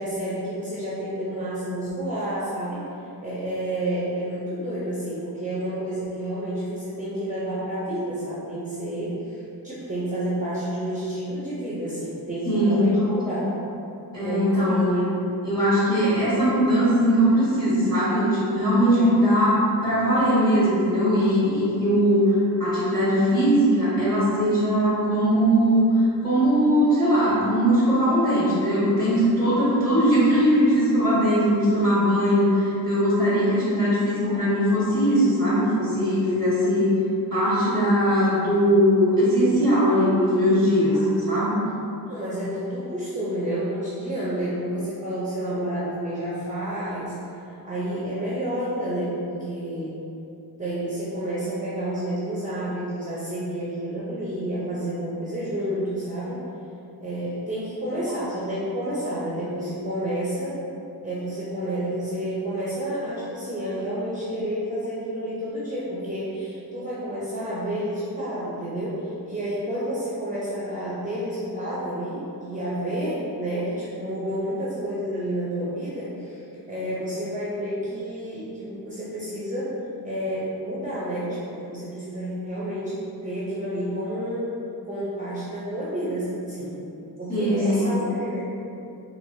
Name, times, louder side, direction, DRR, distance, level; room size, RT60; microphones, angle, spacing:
voice 1, 0.0-2.8 3.2-13.5 14.2-15.1 18.9-19.1 31.3-31.5 42.1-50.0 50.6-56.4 57.0-60.6 61.0-76.4 76.7-79.8 80.0-84.5 84.9-86.8 87.2-88.4, right 1 dB, 20° right, -9 dB, 0.7 m, -30 dB
voice 2, 12.4-12.9 14.1-14.8 15.4-22.3 22.6-25.8 26.2-36.9 37.3-41.6 87.3-87.9, equal, 10° left, -10 dB, 1.3 m, -20 dB
4.7 x 3.0 x 2.7 m, 2.8 s
wide cardioid pair, 105°, 38 cm